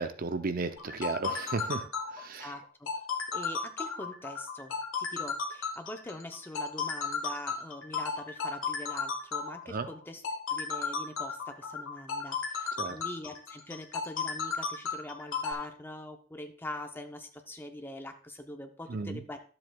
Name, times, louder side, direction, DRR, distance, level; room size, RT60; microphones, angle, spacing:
voice 1, 0.0-2.5 9.7-9.9 12.8-13.0 18.9-19.2, right 4 dB, 45° right, 10 dB, 0.5 m, -34 dB
sound 1, 0.8-15.5, left 5 dB, 85° left, 1.4 m, -34 dB
voice 2, 2.2-3.1 3.3-10.2 10.5-19.4, left 1 dB, 10° left, 6 dB, 0.6 m, -43 dB
12.0 x 7.7 x 2.3 m, 0.42 s
head